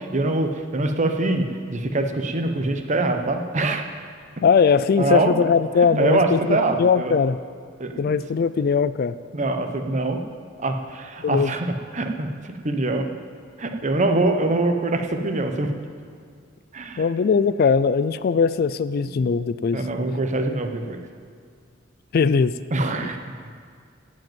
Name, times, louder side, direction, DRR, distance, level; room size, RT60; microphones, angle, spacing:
voice 1, 0.0-3.8 5.0-5.3 6.0-7.1 7.8-8.1 9.3-10.2 10.6-13.1 13.6-15.7 16.7-17.1 19.1-19.2 19.7-21.0 22.7-23.2, right 2 dB, 40° right, 5 dB, 0.9 m, -24 dB
voice 2, 4.4-7.4 8.0-9.1 11.2-11.5 17.0-19.8 22.1-22.5, left 5 dB, 50° left, 15 dB, 0.3 m, -20 dB
15.5 x 5.3 x 9.0 m, 2.1 s
head